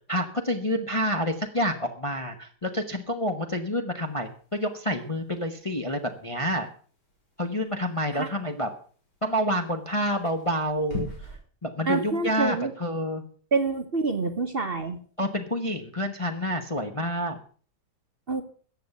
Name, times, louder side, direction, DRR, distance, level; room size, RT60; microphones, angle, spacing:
voice 1, 0.1-6.7 7.4-8.7 9.2-11.1 11.6-13.2 15.2-17.4, equal, 20° left, 4 dB, 1.0 m, -28 dB
sound 1, 4.0-11.4, left 3 dB, 80° left, 5.3 m, -44 dB
voice 2, 11.9-12.7 13.5-15.0 18.3-18.4, right 4 dB, 35° right, 7 dB, 1.3 m, -26 dB
14.5 x 8.3 x 6.7 m, 0.43 s
omnidirectional pair, 1.8 m